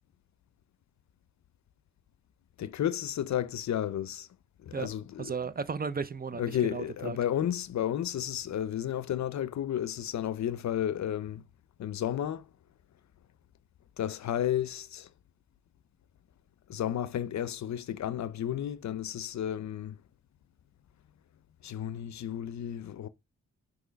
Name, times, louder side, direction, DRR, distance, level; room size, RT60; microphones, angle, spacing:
voice 1, 2.6-4.3 4.6-5.4 6.4-11.4 11.8-12.5 14.0-15.1 16.7-20.0 21.6-23.1, left 10 dB, 70° left, 0.5 m, -32 dB
voice 2, 5.2-7.2, right 5 dB, 30° right, 0.5 m, -35 dB
6.1 x 3.0 x 5.1 m
wide cardioid pair, 115°, 29 cm